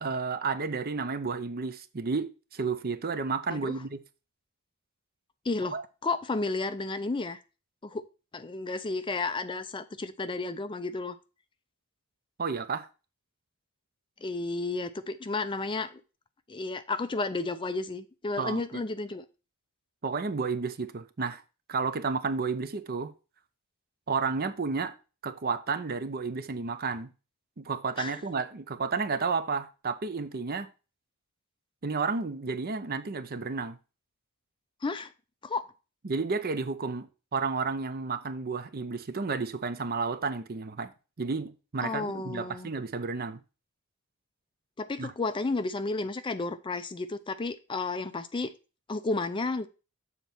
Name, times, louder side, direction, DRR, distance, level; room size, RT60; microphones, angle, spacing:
voice 1, 0.0-4.0 5.7-5.8 12.4-12.9 18.4-18.8 20.0-21.4 21.7-23.1 24.1-24.9 25.2-27.1 27.6-30.7 31.8-33.8 36.0-40.9 41.2-43.4 45.0-45.1, right 4 dB, 40° right, 0.6 m, -31 dB
voice 2, 5.4-5.7 6.0-7.4 7.8-8.0 8.3-11.2 14.2-16.0 16.5-19.2 28.0-28.2 34.8-35.1 35.4-35.6 41.8-42.7 44.8-48.5 48.9-49.7, left 3 dB, 20° left, 0.4 m, -32 dB
7.4 x 4.1 x 5.8 m
head